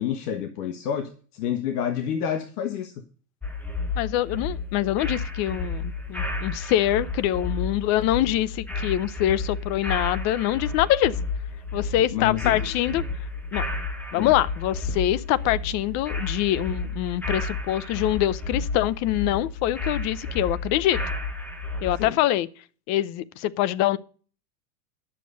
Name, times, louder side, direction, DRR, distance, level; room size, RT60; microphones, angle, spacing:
voice 1, 0.0-2.9 12.1-13.1 14.1-14.3 22.0-22.1, left 9 dB, 70° left, 1.4 m, -29 dB
sound 1, 3.4-22.1, left 3 dB, 5° left, 1.2 m, -31 dB
voice 2, 4.0-11.1 11.7-13.0 13.5-13.6 14.1-21.0 21.8-22.5 22.9-24.0, left 13 dB, 35° left, 0.6 m, -24 dB
10.5 x 6.8 x 6.4 m
supercardioid pair, 135°, 48 cm